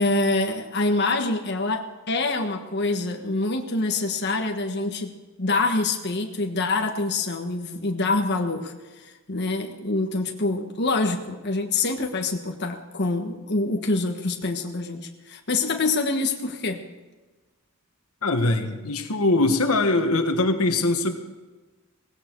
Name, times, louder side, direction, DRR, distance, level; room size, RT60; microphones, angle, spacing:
voice 1, 0.0-5.1 5.4-8.7 9.0-16.8, left 3 dB, 50° left, 3 dB, 1.4 m, -25 dB
voice 2, 18.2-21.1, left 2 dB, 85° left, 6 dB, 1.5 m, -22 dB
18.0 x 16.0 x 4.6 m, 1.2 s
head